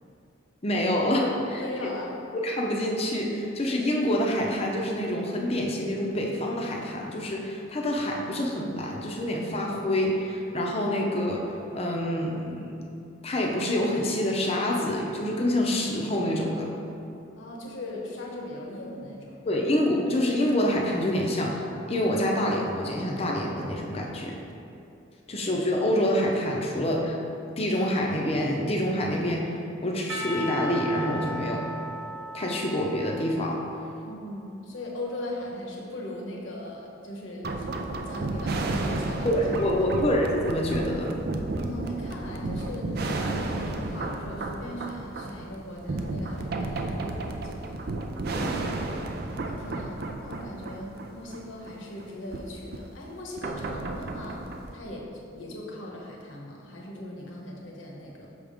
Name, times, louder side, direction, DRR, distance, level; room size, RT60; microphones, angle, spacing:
voice 1, 0.6-1.6 2.3-11.4 11.7-12.7 13.2-16.7 19.5-24.4 25.3-27.2 27.6-29.5 29.8-31.6 32.3-33.6 39.2-41.2 48.3-48.6, left 1 dB, 30° left, -1 dB, 0.6 m, -26 dB
voice 2, 1.5-2.2 17.4-19.5 25.3-25.4 34.0-40.1 41.6-47.9 49.2-54.5 54.7-55.1 55.3-58.3, left 1 dB, 75° left, -2 dB, 1.1 m, -39 dB
Percussion, 30.1-34.0, equal, 70° right, 0.8 m, -36 dB
sound 1, 37.4-52.1 52.3-52.4 52.7-52.8 53.4-54.7, right 2 dB, 50° right, 0.4 m, -32 dB
6.1 x 3.6 x 5.0 m, 2.7 s
head